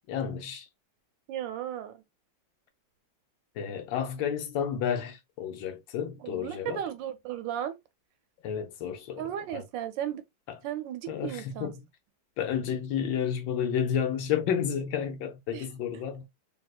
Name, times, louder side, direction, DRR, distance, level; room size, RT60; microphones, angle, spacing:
voice 1, 0.1-0.7 3.6-6.8 8.4-9.3 9.5-9.6 10.5-10.6 11.1-11.8 12.4-16.2, left 8 dB, 75° left, 1.3 m, -31 dB
voice 2, 1.3-2.0 6.2-7.7 9.2-10.2 10.6-11.7 15.5-15.7, right 11 dB, 75° right, 1.2 m, -35 dB
3.6 x 2.6 x 2.3 m
omnidirectional pair, 2.2 m